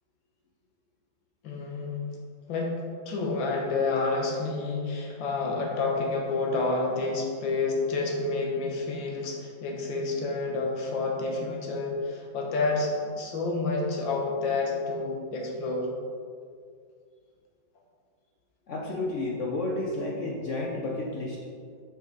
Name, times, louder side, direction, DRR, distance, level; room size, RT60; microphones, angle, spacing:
voice 1, 1.4-2.0 2.5-2.8 3.1-15.9, left 3 dB, 80° left, 0 dB, 1.9 m, -29 dB
voice 2, 18.7-21.4, left 2 dB, 60° left, -2 dB, 0.8 m, -31 dB
7.3 x 5.5 x 3.8 m, 2.2 s
omnidirectional pair, 2.0 m